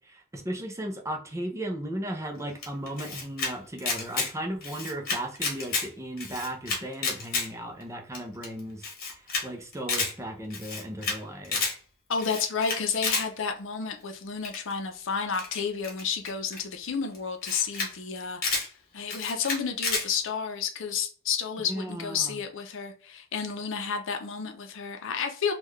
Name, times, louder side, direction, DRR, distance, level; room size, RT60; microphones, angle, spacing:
voice 1, 0.1-8.9 9.4-11.6 21.6-22.4, right 1 dB, 15° right, 2 dB, 0.5 m, -36 dB
Camera, 2.6-3.5 3.8-4.3 4.6-5.9 6.2-7.5 7.8-7.9 8.1-8.2 8.4-8.5 8.8-9.4 9.7-10.1 10.5-11.2 11.4-11.7 12.2-13.2 14.4-14.7 15.3-16.6 17.1-17.2 17.4-17.9 18.2-18.7 19.1-20.0, left 4 dB, 50° left, 1.2 m, -30 dB
voice 2, 12.1-18.4 18.9-25.5, left 6 dB, 65° left, 5 dB, 0.6 m, -31 dB
3.7 x 2.3 x 3.1 m, 0.41 s
head